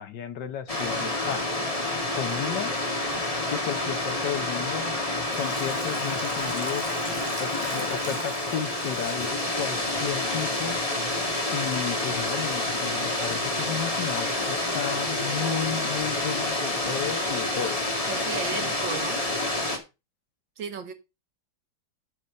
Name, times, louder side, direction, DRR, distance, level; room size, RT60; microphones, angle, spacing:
voice 1, 0.0-1.5 2.1-2.7 3.5-4.9 5.3-6.8 7.4-10.8 11.5-18.1 18.5-18.7, left 9 dB, 65° left, 1.4 m, -33 dB
sound 1, 0.7-19.8, left 2 dB, 20° left, 2.0 m, -28 dB
Sink (filling or washing), 5.2-9.4 9.9-10.0, right 1 dB, 15° right, 3.2 m, -43 dB
voice 2, 18.1-19.3 20.6-20.9, right 6 dB, 75° right, 2.0 m, -35 dB
9.6 x 6.0 x 5.1 m
omnidirectional pair, 2.1 m